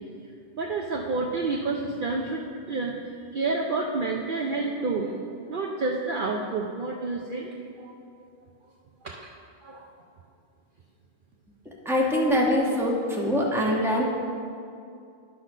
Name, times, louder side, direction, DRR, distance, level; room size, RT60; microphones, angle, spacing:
voice 1, 0.6-2.4 2.7-2.9 3.3-5.1 5.5-7.5 7.8-7.9 9.0-9.3 9.6-9.9, right 3 dB, 55° right, 0 dB, 0.7 m, -29 dB
voice 2, 11.8-14.0, left 1 dB, ahead, -3 dB, 1.2 m, -23 dB
11.0 x 4.1 x 6.1 m, 2.4 s
omnidirectional pair, 1.2 m